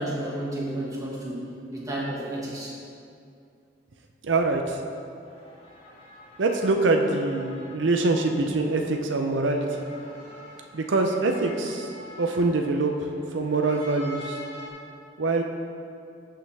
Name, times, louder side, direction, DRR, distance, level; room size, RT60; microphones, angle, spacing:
voice 1, 0.0-2.8, right 1 dB, 20° right, -5 dB, 1.7 m, -32 dB
voice 2, 4.2-4.8 6.4-9.7 10.7-11.9 12.2-14.4 15.2-15.4, right 3 dB, 85° right, 3 dB, 0.6 m, -24 dB
sound 1, 5.2-14.7, left 1 dB, 35° left, 2.0 m, -46 dB
14.5 x 5.7 x 3.4 m, 2.5 s
head